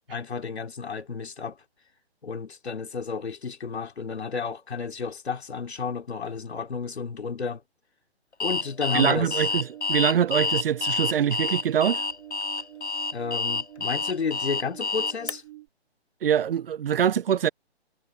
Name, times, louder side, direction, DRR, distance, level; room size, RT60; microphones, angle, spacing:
voice 1, 0.1-1.6 2.2-7.6 8.4-9.5 13.1-15.4, left 5 dB, 70° left, 2.9 m, -32 dB
Alarm, 8.4-15.3, left 4 dB, 90° left, 1.1 m, -28 dB
sound 1, 8.9-15.7, right 17 dB, 30° right, 3.7 m, -47 dB
voice 2, 8.9-12.0 16.2-17.5, right 9 dB, 60° right, 0.5 m, -24 dB
figure-of-eight pair, 140°, 33 cm